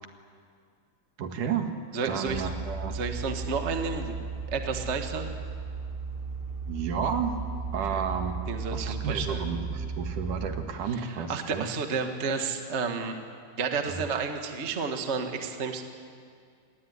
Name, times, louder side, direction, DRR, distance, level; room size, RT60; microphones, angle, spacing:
voice 1, 1.2-3.0 6.7-7.4 7.7-8.3 8.7-11.7 13.9-14.0, right 6 dB, 65° right, 5 dB, 2.9 m, -32 dB
voice 2, 1.9-2.4 2.9-4.2 4.5-5.3 7.9-8.0 8.5-9.4 10.9-13.2 13.6-15.9, right 5 dB, 45° right, 5 dB, 0.8 m, -31 dB
sound 1, 2.3-10.7, right 5 dB, 85° right, 0.5 m, -35 dB
27.0 x 20.5 x 9.7 m, 2.2 s
omnidirectional pair, 4.3 m